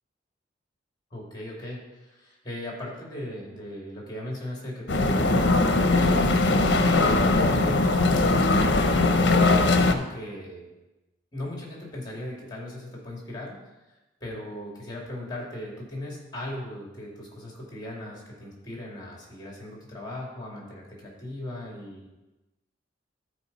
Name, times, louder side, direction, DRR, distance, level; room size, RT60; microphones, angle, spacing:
voice 1, 1.1-6.5 6.9-10.7 11.3-13.6 14.2-22.1, left 1 dB, 25° left, -2 dB, 2.4 m, -37 dB
sound 1, 4.9-9.9, left 2 dB, 65° left, 0.7 m, -20 dB
13.0 x 4.9 x 4.1 m, 1.0 s
head